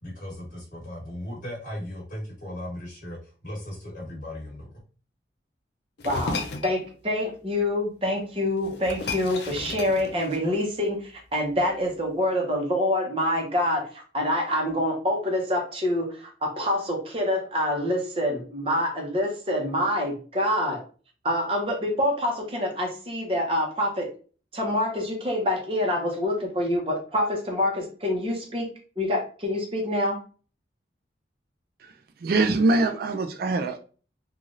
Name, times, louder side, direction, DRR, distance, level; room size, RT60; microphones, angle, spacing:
voice 1, 0.0-4.7, left 1 dB, 50° left, -4 dB, 1.2 m, -37 dB
sound 1, 6.0-6.8 8.2-8.3 8.6-10.6, left 3 dB, 70° left, 0.5 m, -34 dB
voice 2, 6.0-6.4 6.6-20.8 21.2-24.1 24.5-28.7 29.0-30.2, left 1 dB, 30° right, 0 dB, 0.8 m, -26 dB
voice 3, 32.2-33.8, right 2 dB, 55° right, 6 dB, 0.3 m, -23 dB
3.2 x 2.4 x 2.5 m, 0.38 s
head